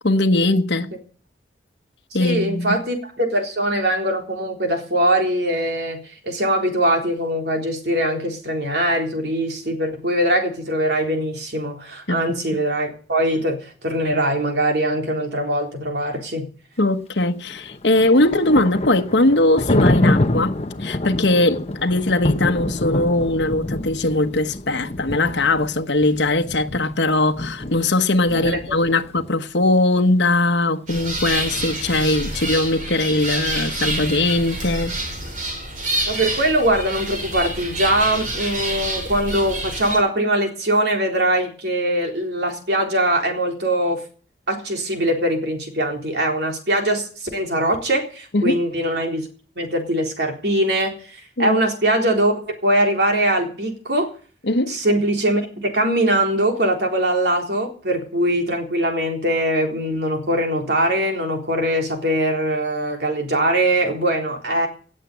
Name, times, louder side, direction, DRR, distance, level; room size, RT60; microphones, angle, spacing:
voice 1, 0.0-0.9 2.1-2.8 12.1-12.2 16.8-34.9 48.3-48.6 51.4-51.6 54.5-54.8, left 2 dB, 75° left, 1.3 m, -20 dB
voice 2, 2.2-16.4 28.3-28.6 36.1-44.0 44.5-49.3 49.6-54.1 54.7-64.7, right 1 dB, 65° right, 3.8 m, -22 dB
Thunder, 17.5-29.3, left 1 dB, 35° left, 1.0 m, -26 dB
sound 1, 30.9-40.0, right 1 dB, 45° right, 4.9 m, -27 dB
18.0 x 7.5 x 8.1 m
head